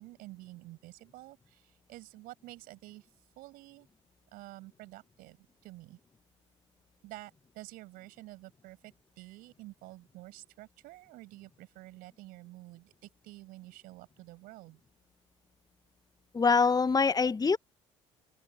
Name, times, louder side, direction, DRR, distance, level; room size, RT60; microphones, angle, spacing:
voice 1, 0.0-3.1 3.4-3.9 4.3-6.0 7.0-14.8, right 19 dB, 70° right, 5.8 m, -50 dB
voice 2, 16.3-17.6, left 5 dB, 25° left, 1.1 m, -24 dB
open air
hypercardioid pair, 60°, 16 cm